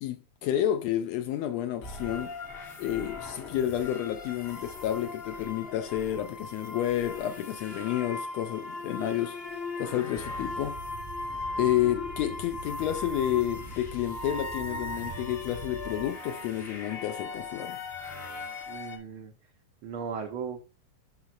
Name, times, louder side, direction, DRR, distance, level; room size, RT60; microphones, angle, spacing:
voice 1, 0.0-2.3 2.8-9.4 9.8-10.8 11.6-17.8, left 12 dB, 80° left, 1.6 m, -30 dB
sound 1, 1.8-19.0, left 3 dB, 45° left, 0.7 m, -39 dB
sound 2, 10.1-16.1, right 2 dB, 55° right, 0.6 m, -44 dB
voice 2, 18.7-19.3 19.8-20.6, right 6 dB, 85° right, 1.1 m, -36 dB
12.0 x 5.2 x 2.4 m
omnidirectional pair, 3.4 m